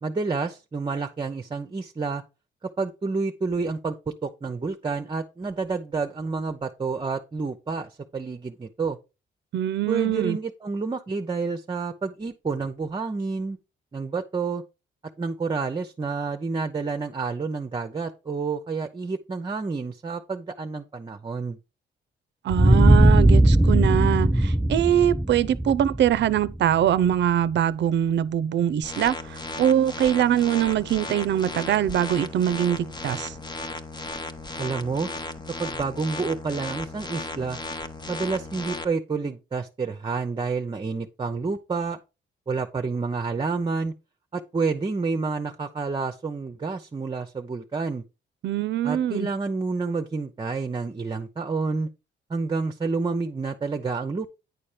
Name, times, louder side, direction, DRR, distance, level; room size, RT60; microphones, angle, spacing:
voice 1, 0.0-2.2 2.8-9.0 9.9-13.6 13.9-14.6 15.2-21.6 34.6-35.1 35.6-37.6 38.1-42.0 42.5-43.9 44.3-48.0 48.8-51.9 52.3-54.3, right 4 dB, 25° right, 0.8 m, -29 dB
voice 2, 9.5-10.4 22.4-33.3 48.4-49.3, right 10 dB, 65° right, 0.6 m, -23 dB
Bass Boom, 22.5-27.1, right 1 dB, 5° right, 0.3 m, -19 dB
sound 1, 28.8-38.8, left 2 dB, 20° left, 0.9 m, -35 dB
9.6 x 4.2 x 5.0 m
cardioid pair, 90°, 20 cm